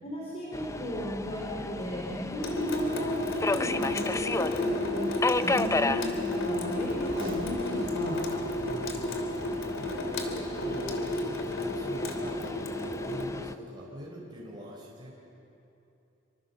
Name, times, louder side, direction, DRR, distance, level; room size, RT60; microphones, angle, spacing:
voice 1, 0.0-8.2, equal, 30° left, -4 dB, 4.2 m, -35 dB
Subway metro underground, 0.5-13.6, left 2 dB, 15° left, 0.5 m, -34 dB
Water tap faucet / Sink (filling or washing) / Drip, 2.4-13.2, left 1 dB, 80° left, 3.0 m, -32 dB
Packing tape duct tape, 7.0-8.1 8.5-8.8 9.4-9.7 10.7-11.0 11.6-11.7, right 1 dB, 75° right, 3.1 m, -41 dB
voice 2, 8.5-15.1, equal, 20° right, -4 dB, 4.2 m, -44 dB
26.5 x 24.5 x 7.0 m, 2.9 s
head